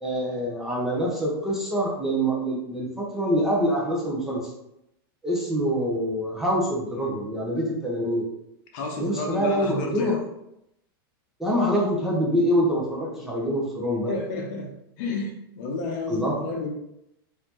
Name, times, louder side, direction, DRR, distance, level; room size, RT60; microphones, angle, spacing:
voice 1, 0.0-4.5 5.2-8.3 9.0-10.2 11.4-14.1 16.1-16.4, equal, 5° right, -4 dB, 0.7 m, -25 dB
voice 2, 8.7-10.2 14.1-14.7 15.0-16.7, left 2 dB, 50° left, 1 dB, 0.8 m, -31 dB
4.0 x 2.6 x 2.9 m, 0.81 s
supercardioid pair, 150°, 12 cm